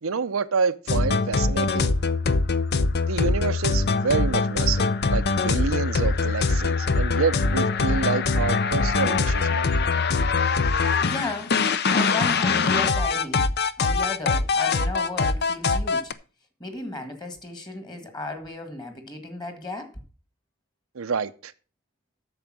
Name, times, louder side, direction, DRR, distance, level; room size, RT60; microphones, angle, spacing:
voice 1, 0.0-1.9 3.1-9.9 21.0-21.5, right 5 dB, 70° right, 0.6 m, -28 dB
sound 1, 0.9-16.1, left 4 dB, 50° left, 0.6 m, -23 dB
voice 2, 11.0-11.5 11.9-13.5 13.8-16.1 16.6-19.9, left 2 dB, 20° left, 1.7 m, -34 dB
8.8 x 6.8 x 6.1 m
head